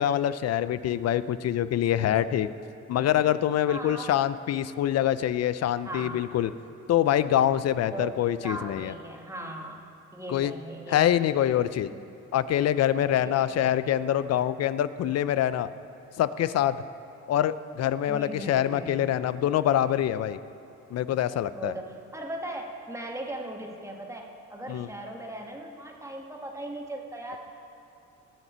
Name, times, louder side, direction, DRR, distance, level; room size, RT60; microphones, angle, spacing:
voice 1, 0.0-2.5 2.9-6.5 6.9-8.9 10.3-10.5 10.9-11.9 12.3-15.7 16.2-16.8 17.3-20.4 20.9-21.7 24.7-24.9, left 11 dB, 55° left, 15 dB, 0.5 m, -25 dB
voice 2, 3.7-4.1 5.8-6.3 7.9-8.1 8.4-9.8 10.1-11.1 11.9-12.0 13.1-13.7 18.1-19.0 21.5-27.4, right 1 dB, 10° right, 0 dB, 1.5 m, -38 dB
19.5 x 7.3 x 4.4 m, 2.6 s
cardioid pair, 90°, 30 cm